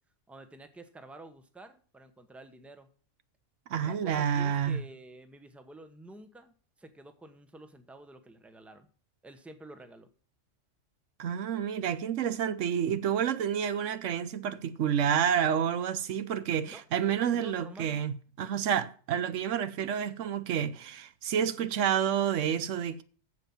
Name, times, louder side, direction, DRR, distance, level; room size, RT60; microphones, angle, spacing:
voice 1, 0.3-2.9 3.8-8.9 9.2-10.1 16.6-16.8 17.1-18.0, right 1 dB, ahead, 0.8 m, -49 dB
voice 2, 3.7-4.8 11.2-23.0, right 8 dB, 90° right, 1.1 m, -29 dB
7.9 x 7.4 x 7.1 m
omnidirectional pair, 1.2 m